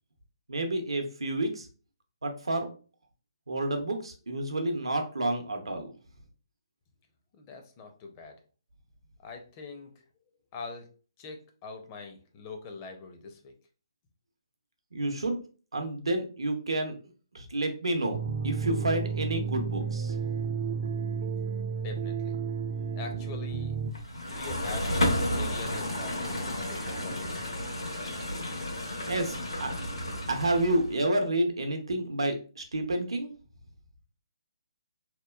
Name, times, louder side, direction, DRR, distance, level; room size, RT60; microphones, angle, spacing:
voice 1, 0.5-1.7 2.2-2.7 3.5-5.9 14.9-15.4 15.7-16.9 17.3-18.2 18.4-20.1 29.1-29.7 30.3-33.3, right 1 dB, 80° right, 5 dB, 0.6 m, -29 dB
voice 2, 7.3-8.4 9.2-10.0 10.5-13.5 21.7-22.4 22.9-23.8 24.4-24.9 25.3-27.3, left 4 dB, 30° left, 4 dB, 0.5 m, -43 dB
sound 1, 18.1-23.9, right 6 dB, 40° right, 0.3 m, -32 dB
sound 2, 23.9-30.9, left 1 dB, 85° left, 0.9 m, -32 dB
2.9 x 2.1 x 2.2 m, 0.37 s
figure-of-eight pair, 145°, 3 cm